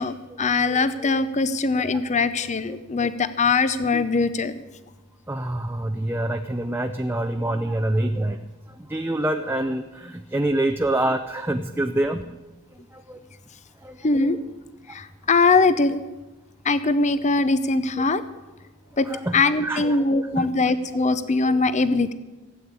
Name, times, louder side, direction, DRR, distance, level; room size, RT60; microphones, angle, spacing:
voice 1, 0.0-4.6 14.0-14.4 14.9-16.0 16.6-18.2 19.0-19.1 19.3-22.1, left 3 dB, 35° left, 13 dB, 0.7 m, -21 dB
voice 2, 5.3-8.4 8.9-12.4 12.9-13.2 13.8-14.0 19.1-20.0 20.3-20.5 21.0-21.1 21.5-21.6, right 1 dB, 10° right, 6 dB, 0.6 m, -26 dB
16.0 x 8.5 x 9.6 m, 1.1 s
head